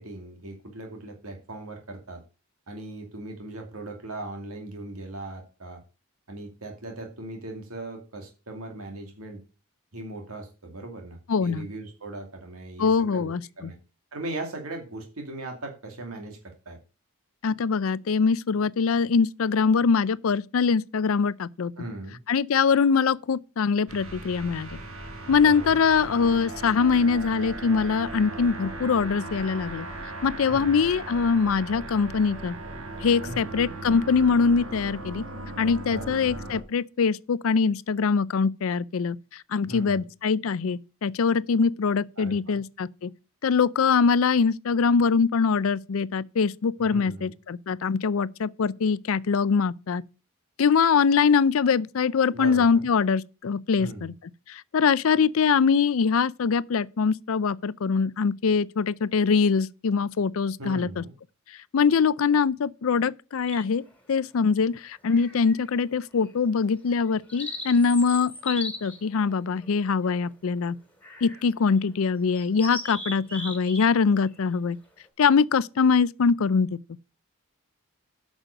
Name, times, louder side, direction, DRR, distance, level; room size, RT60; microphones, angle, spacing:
voice 1, 0.0-2.2 2.7-5.8 6.3-9.4 9.9-13.8 14.1-16.8 21.8-22.2 25.2-25.8 30.5-30.8 33.3-33.5 35.9-36.3 39.6-40.0 42.2-42.6 46.9-47.3 52.3-52.8 53.8-54.1 60.6-61.1, right 2 dB, 90° right, 2.4 m, -39 dB
voice 2, 11.3-11.7 12.8-13.7 17.4-21.7 22.3-24.7 25.3-29.9 30.2-32.5 33.0-35.3 35.6-43.1 43.4-50.0 50.6-54.1 54.5-61.0 61.7-63.8 64.1-70.8 71.2-74.8 75.2-76.7, left 5 dB, 70° left, 0.5 m, -23 dB
sound 1, 23.9-36.6, right 2 dB, 70° right, 1.9 m, -38 dB
sound 2, 63.5-64.0 65.1-65.8 66.1-66.3 66.9-70.3 71.0-71.5 71.8-71.9 72.3-73.9 74.2-74.5, left 1 dB, 5° left, 2.4 m, -38 dB
8.9 x 6.2 x 6.5 m
head